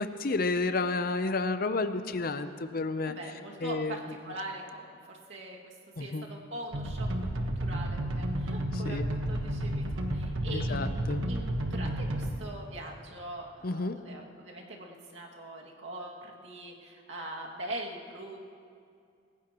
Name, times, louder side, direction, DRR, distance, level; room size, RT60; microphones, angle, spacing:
voice 1, 0.0-3.1 3.6-4.0 6.0-6.3 8.7-9.1 10.5-11.2 13.6-14.0, left 3 dB, 45° left, 10 dB, 0.7 m, -31 dB
voice 2, 3.1-5.7 6.0-7.1 7.4-11.0 11.3-18.4, right 1 dB, 70° right, -2 dB, 2.2 m, -42 dB
sound 1, 6.7-12.3, right 1 dB, 90° right, 1.3 m, -31 dB
27.0 x 15.5 x 3.0 m, 2.3 s
head